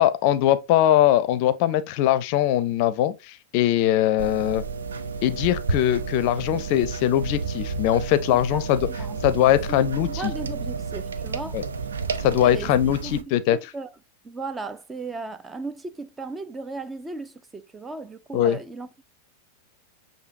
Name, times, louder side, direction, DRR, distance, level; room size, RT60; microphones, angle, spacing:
voice 1, 0.0-4.6 5.2-8.9 9.2-10.3 11.5-11.6 12.2-13.7 18.3-18.6, left 12 dB, 50° left, 0.5 m, -21 dB
sound 1, 4.2-13.2, right 4 dB, 75° right, 0.5 m, -31 dB
voice 2, 8.3-8.6 9.0-9.2 10.0-11.6 12.4-13.2 13.5-13.9 14.2-19.0, right 3 dB, 15° right, 0.4 m, -36 dB
6.7 x 2.7 x 2.6 m
figure-of-eight pair, 90°, 0 cm